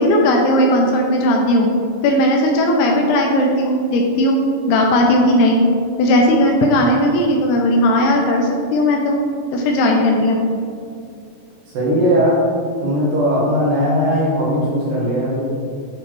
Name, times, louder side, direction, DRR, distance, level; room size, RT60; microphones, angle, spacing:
voice 1, 0.0-1.7 2.0-4.4 4.7-5.6 6.0-9.2 9.5-10.4, left 1 dB, 80° left, 0 dB, 2.5 m, -16 dB
voice 2, 11.7-12.4 12.8-15.4, equal, 65° right, -7 dB, 2.3 m, -18 dB
8.2 x 3.0 x 4.5 m, 2.4 s
omnidirectional pair, 5.0 m